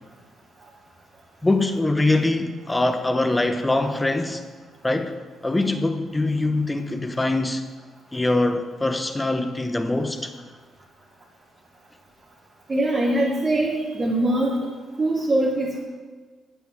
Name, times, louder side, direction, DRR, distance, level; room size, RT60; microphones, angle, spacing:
voice 1, 1.4-4.4 4.8-5.2 5.4-7.6 8.1-10.3, left 2 dB, 15° left, 1.2 m, -23 dB
voice 2, 12.7-14.7 15.0-15.8, right 1 dB, 30° right, 2.9 m, -22 dB
9.7 x 6.8 x 8.9 m
cardioid pair, 90°, 0 cm